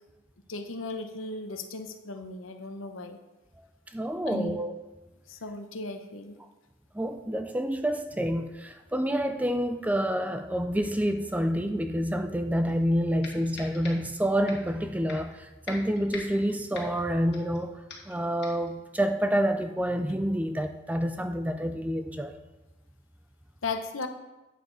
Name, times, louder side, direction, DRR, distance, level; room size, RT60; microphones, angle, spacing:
voice 1, 0.5-3.2 4.3-4.6 5.3-6.4 23.6-24.1, left 3 dB, 90° left, 0.9 m, -36 dB
voice 2, 3.9-4.8 6.9-22.3, equal, 10° right, 0.4 m, -28 dB
sound 1, 12.7-12.8 13.2-14.2 14.5-14.7 15.1-15.4 15.7-17.6 17.9-18.2 18.4-18.7, left 4 dB, 55° left, 1.9 m, -43 dB
9.2 x 6.8 x 4.0 m
head